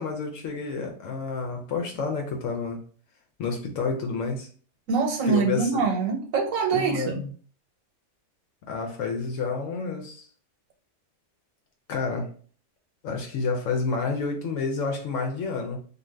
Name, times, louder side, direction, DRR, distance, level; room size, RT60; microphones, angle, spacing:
voice 1, 0.0-2.8 3.4-4.5 5.3-5.8 6.7-7.3 8.7-10.2 11.9-12.3 13.0-15.8, left 4 dB, 75° left, 1.0 m, -29 dB
voice 2, 4.9-7.2, right 5 dB, 80° right, 1.1 m, -24 dB
2.6 x 2.4 x 3.2 m
omnidirectional pair, 1.4 m